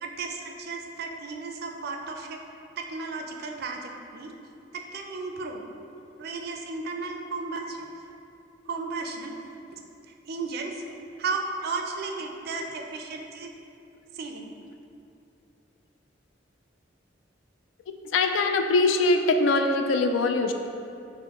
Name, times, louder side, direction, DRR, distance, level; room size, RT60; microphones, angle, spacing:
voice 1, 0.0-2.4 2.8-4.3 4.7-5.6 6.2-7.9 8.7-9.4 9.7-9.8 10.3-10.8 11.2-13.5 14.1-14.5, right 4 dB, 55° right, 3 dB, 0.4 m, -34 dB
voice 2, 18.1-20.5, left 3 dB, 85° left, 6 dB, 0.3 m, -22 dB
6.1 x 2.1 x 2.9 m, 2.6 s
head